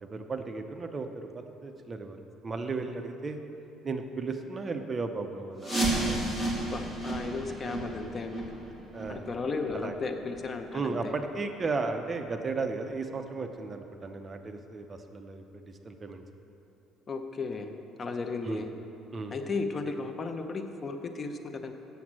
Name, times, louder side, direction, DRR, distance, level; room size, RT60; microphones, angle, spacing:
voice 1, 0.0-2.2 2.4-3.4 3.8-6.2 7.4-7.6 8.9-9.2 9.7-9.9 10.7-16.2 18.4-18.6 19.1-19.3, right 4 dB, 25° right, 6 dB, 0.6 m, -35 dB
sound 1, 5.6-11.2 11.5-11.6 12.2-12.3 12.9-13.0 13.5-13.6, right 2 dB, 5° left, 2.3 m, -33 dB
voice 2, 6.7-8.5 9.1-11.1 17.1-17.7 18.0-18.7 19.3-21.7, left 4 dB, 30° left, 6 dB, 0.6 m, -35 dB
7.9 x 7.0 x 7.4 m, 2.9 s
cardioid pair, 135°, 0 cm